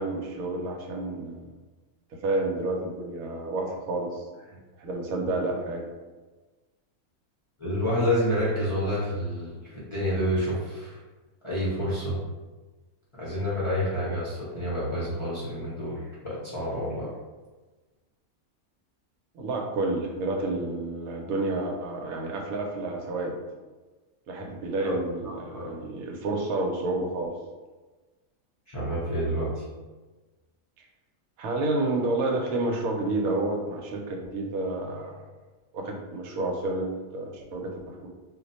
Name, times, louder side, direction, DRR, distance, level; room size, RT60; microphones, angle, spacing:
voice 1, 0.0-1.5 2.2-4.3 4.8-5.8 19.3-23.4 24.3-27.3 31.4-35.2 35.7-38.1, right 2 dB, 85° right, 1 dB, 1.0 m, -30 dB
voice 2, 7.6-11.0 11.4-12.2 13.2-17.1 24.8-24.9 25.5-25.7 28.7-29.7, equal, 35° left, -9 dB, 0.5 m, -28 dB
2.4 x 2.2 x 3.9 m, 1.2 s
omnidirectional pair, 1.5 m